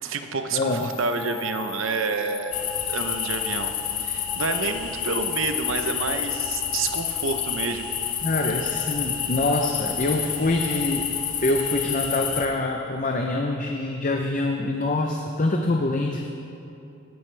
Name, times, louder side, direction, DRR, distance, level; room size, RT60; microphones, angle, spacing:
voice 1, 0.0-3.7 4.0-7.9, right 4 dB, 60° right, 7 dB, 0.8 m, -29 dB
voice 2, 0.5-0.9 8.2-11.0 11.4-16.3, left 2 dB, 35° left, 2 dB, 0.6 m, -25 dB
sound 1, 0.6-12.8, left 2 dB, 10° left, 0.9 m, -39 dB
sound 2, 2.5-12.5, left 9 dB, 80° left, 1.0 m, -29 dB
18.0 x 11.0 x 3.3 m, 2.7 s
head